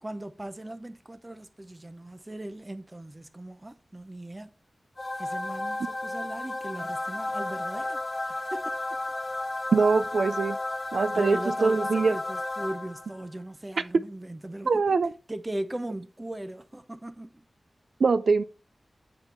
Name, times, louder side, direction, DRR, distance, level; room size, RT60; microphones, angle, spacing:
voice 1, 0.0-4.5 5.2-8.7 11.1-15.0 15.3-17.4, right 1 dB, 20° right, 0.6 m, -38 dB
sound 1, 5.0-13.2, left 2 dB, 35° left, 0.5 m, -33 dB
voice 2, 9.7-10.6 10.9-12.1 14.7-15.1 18.0-18.4, right 4 dB, 85° right, 0.3 m, -23 dB
7.1 x 3.8 x 4.3 m
wide cardioid pair, 110°, 0 cm